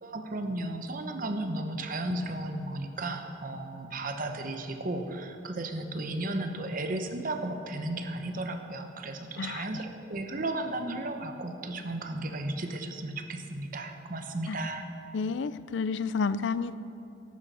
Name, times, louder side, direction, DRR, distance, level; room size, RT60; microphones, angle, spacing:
voice 1, 0.0-14.9, right 2 dB, 45° right, 6 dB, 1.0 m, -34 dB
voice 2, 9.4-9.8 14.5-14.6 15.1-16.8, left 5 dB, 65° left, 15 dB, 0.4 m, -31 dB
14.0 x 11.5 x 4.2 m, 2.8 s
head